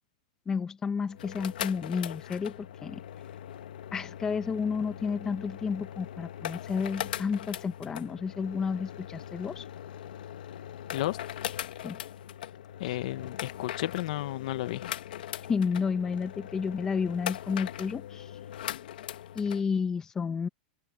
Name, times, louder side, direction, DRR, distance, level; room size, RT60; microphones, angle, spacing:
voice 1, 0.5-3.0 3.9-9.7 11.8-12.0 15.5-18.3 19.3-20.5, left 5 dB, 10° left, 0.9 m, -31 dB
sound 1, 1.1-19.6, left 11 dB, 80° left, 1.6 m, -40 dB
voice 2, 12.8-14.8, left 15 dB, 55° left, 1.1 m, -32 dB
open air
supercardioid pair, 175°, 5 cm